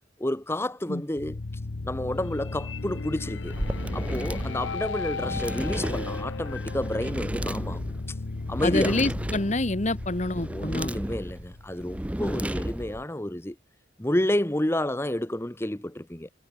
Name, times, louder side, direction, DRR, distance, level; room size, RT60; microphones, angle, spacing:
voice 1, 0.2-1.4 1.8-3.6 3.9-7.9 8.5-9.0 10.5-13.5 14.0-16.3, left 1 dB, 15° left, 1.0 m, -30 dB
sound 1, 1.2-12.1, left 3 dB, 85° left, 0.9 m, -35 dB
sound 2, 3.4-13.0, right 1 dB, 5° right, 0.5 m, -33 dB
voice 2, 8.6-10.9, left 2 dB, 40° left, 1.4 m, -27 dB
head